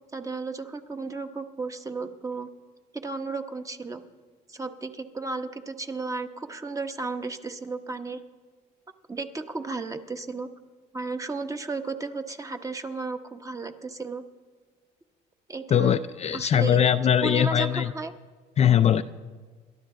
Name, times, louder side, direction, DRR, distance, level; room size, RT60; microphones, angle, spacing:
voice 1, 0.1-2.5 2.9-4.0 4.5-8.2 9.1-10.5 10.9-14.2 15.5-15.9 16.3-16.8 17.2-18.1, right 3 dB, 20° right, 7 dB, 1.0 m, -34 dB
voice 2, 15.7-17.9 18.6-19.0, left 9 dB, 40° left, 10 dB, 0.4 m, -21 dB
28.5 x 12.5 x 3.8 m, 1.4 s
cardioid pair, 110°, 17 cm